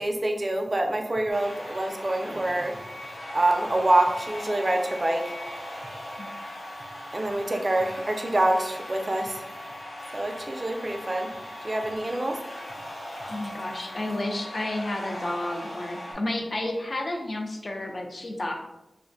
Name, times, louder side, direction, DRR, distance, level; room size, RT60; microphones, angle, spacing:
voice 1, 0.0-3.1 3.3-5.3 7.1-9.5 10.1-11.3 11.6-12.4 12.8-12.9, right 1 dB, 35° right, 4 dB, 0.3 m, -26 dB
sound 1, 1.3-16.1, left 1 dB, 80° left, 1.0 m, -39 dB
voice 2, 13.3-18.5, left 1 dB, 50° left, 2 dB, 0.4 m, -31 dB
2.4 x 2.0 x 2.5 m, 0.93 s
wide cardioid pair, 65°, 0 cm